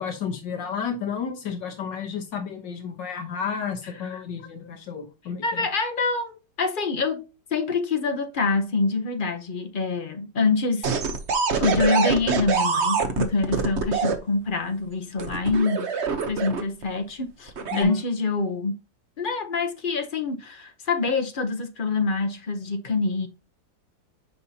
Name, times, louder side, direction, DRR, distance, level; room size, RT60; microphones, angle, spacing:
voice 1, 0.0-5.7 17.7-18.0, left 6 dB, 75° left, 1.7 m, -31 dB
voice 2, 5.4-7.2 7.5-10.9 11.6-15.9 16.3-18.8 19.2-23.3, left 3 dB, 40° left, 0.7 m, -25 dB
sound 1, 10.8-14.2 15.2-16.8 17.5-17.8, right 5 dB, 45° right, 1.0 m, -24 dB
9.3 x 5.5 x 2.8 m
omnidirectional pair, 2.0 m